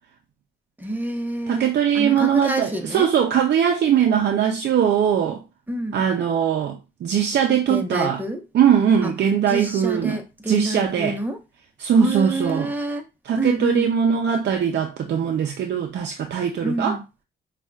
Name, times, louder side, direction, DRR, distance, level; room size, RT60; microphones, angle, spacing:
voice 1, 0.8-3.1 5.7-6.0 7.7-8.4 9.0-9.1 9.5-11.4 12.0-13.0 13.4-13.9 16.6-17.0, right 1 dB, 10° right, 0.9 m, -27 dB
voice 2, 1.5-5.4 5.9-8.2 8.5-10.2 10.5-11.2 11.8-12.7 13.2-17.0, right 8 dB, 60° right, 0.6 m, -21 dB
5.3 x 2.4 x 2.4 m
cardioid pair, 90°, 20 cm